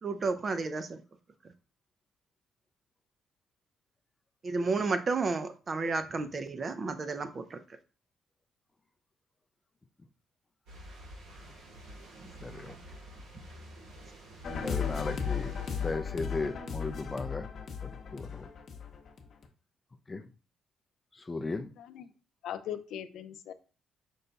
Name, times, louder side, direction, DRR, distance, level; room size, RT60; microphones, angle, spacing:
voice 1, 0.0-1.0 4.4-7.6, right 3 dB, 40° right, 0.5 m, -32 dB
sound 1, 10.7-15.9, right 1 dB, 80° right, 1.2 m, -49 dB
voice 2, 12.4-12.7 14.5-15.5 15.8-17.5 17.8-18.5 20.1-20.2 21.2-21.7, left 3 dB, 25° left, 0.4 m, -36 dB
sound 2, 14.4-19.5, left 6 dB, 55° left, 0.8 m, -36 dB
voice 3, 22.4-23.5, left 10 dB, 80° left, 0.4 m, -39 dB
5.3 x 2.3 x 3.9 m
cardioid pair, 90°, 0 cm